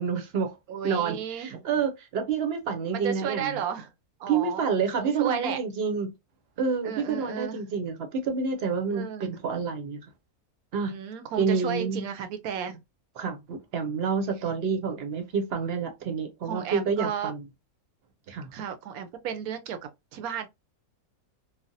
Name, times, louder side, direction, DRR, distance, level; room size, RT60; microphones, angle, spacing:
voice 1, 0.0-0.5 0.8-3.5 4.3-6.1 6.6-10.0 10.7-11.0 11.4-12.0 13.2-17.4 18.3-18.5, right 5 dB, 55° right, 0.8 m, -28 dB
voice 2, 0.7-1.7 2.9-3.9 4.2-4.7 5.0-5.6 6.8-7.6 8.9-9.3 10.8-12.8 16.4-17.3 18.5-20.5, right 8 dB, 80° right, 1.0 m, -33 dB
3.2 x 2.1 x 2.6 m
omnidirectional pair, 1.6 m